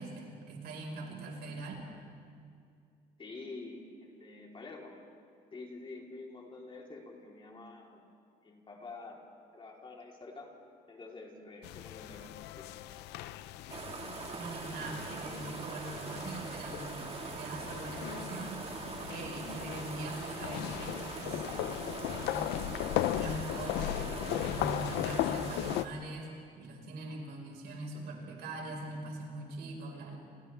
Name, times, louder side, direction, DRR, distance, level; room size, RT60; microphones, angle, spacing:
voice 1, 0.0-1.7 14.3-18.7 19.1-21.5 22.0-22.6 23.1-30.2, right 2 dB, 75° right, 0 dB, 5.1 m, -42 dB
voice 2, 3.2-4.9 5.5-8.0 8.4-10.5 10.9-12.3 12.6-12.7, left 3 dB, 30° left, -1 dB, 3.7 m, -47 dB
sound 1, 11.6-25.8, left 14 dB, 85° left, 0.6 m, -37 dB
sound 2, 13.7-25.9, right 4 dB, 35° right, 2.0 m, -42 dB
30.0 x 27.5 x 3.5 m, 2.3 s
cardioid pair, 110°, 17 cm